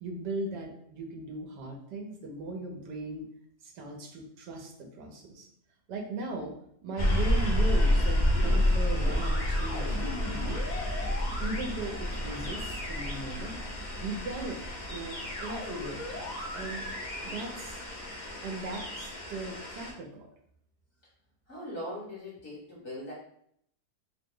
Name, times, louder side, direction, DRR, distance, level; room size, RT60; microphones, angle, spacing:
voice 1, 0.0-3.3 3.6-5.5 5.9-6.5 6.8-10.8 11.4-13.6 14.0-14.6 14.9-16.9 17.2-17.8 18.4-20.3, right 2 dB, 75° right, 1 dB, 1.3 m, -38 dB
sound 1, 7.0-19.9, left 1 dB, 85° left, 0.4 m, -30 dB
voice 2, 21.5-23.1, left 1 dB, 45° left, -6 dB, 1.3 m, -40 dB
3.2 x 2.0 x 3.6 m, 0.68 s
omnidirectional pair, 1.9 m